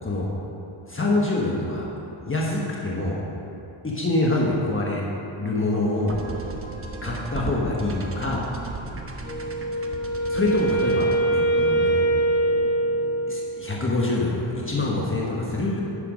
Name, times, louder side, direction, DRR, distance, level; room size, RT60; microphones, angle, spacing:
voice 1, 0.9-1.9 2.2-3.2 3.8-5.0 5.4-6.1 7.0-8.4 10.3-11.1 11.3-12.1 13.3-15.8, left 2 dB, 25° left, -4 dB, 1.2 m, -25 dB
sound 1, 6.1-13.4, right 3 dB, 25° right, 0.9 m, -36 dB
Wind instrument woodwind instrument, 9.2-13.6, right 1 dB, 75° left, 2.4 m, -23 dB
9.9 x 6.8 x 5.1 m, 2.9 s
wide cardioid pair, 100°, 49 cm